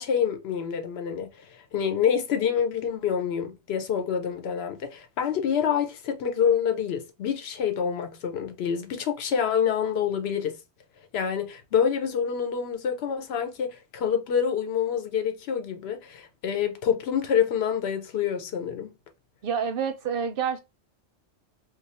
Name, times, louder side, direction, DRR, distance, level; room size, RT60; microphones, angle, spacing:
voice 1, 0.0-10.6 11.1-18.9, left 7 dB, 70° left, 0.9 m, -27 dB
voice 2, 19.4-20.6, right 7 dB, 65° right, 0.7 m, -28 dB
2.6 x 2.3 x 4.1 m
omnidirectional pair, 1.1 m